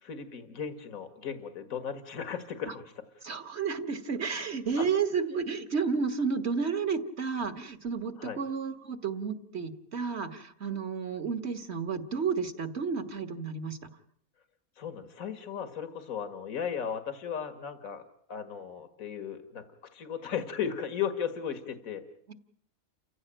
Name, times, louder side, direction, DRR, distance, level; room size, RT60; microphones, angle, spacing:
voice 1, 0.0-3.2 4.8-4.9 8.2-8.4 14.8-18.0 18.3-19.6 19.9-22.0, left 7 dB, 75° left, 10 dB, 2.1 m, -36 dB
voice 2, 3.2-13.8 22.3-22.4, right 5 dB, 50° right, 10 dB, 1.8 m, -31 dB
29.5 x 15.5 x 8.9 m, 0.62 s
omnidirectional pair, 1.5 m